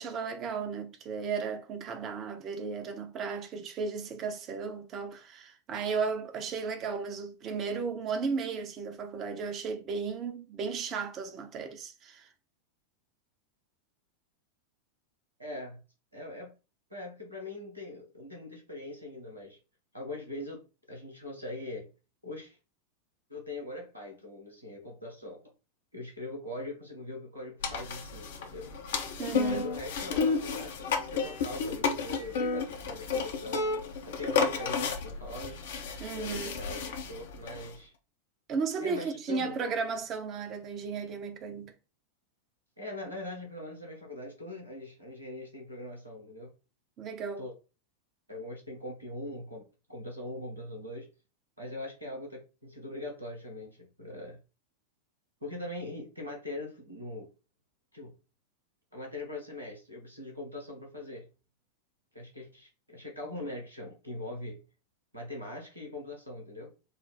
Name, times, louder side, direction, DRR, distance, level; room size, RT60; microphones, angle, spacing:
voice 1, 0.0-12.3 29.2-29.7 36.0-36.6 38.5-41.7 47.0-47.5, right 5 dB, 30° right, 0.7 m, -35 dB
voice 2, 15.4-15.8 16.1-16.5 16.9-19.6 19.9-20.6 20.9-21.9 22.2-22.6 23.3-25.4 25.9-28.7 29.4-33.7 34.0-35.6 36.1-37.9 38.8-39.6 42.8-46.5 47.4-47.5 48.3-51.1 51.6-54.4 55.4-57.3 57.9-58.1 58.9-61.3 62.1-64.6 65.1-66.7, left 1 dB, 85° right, 1.3 m, -41 dB
sound 1, 27.6-37.7, left 5 dB, 60° left, 0.7 m, -32 dB
4.2 x 2.0 x 4.2 m
figure-of-eight pair, 90°, 0 cm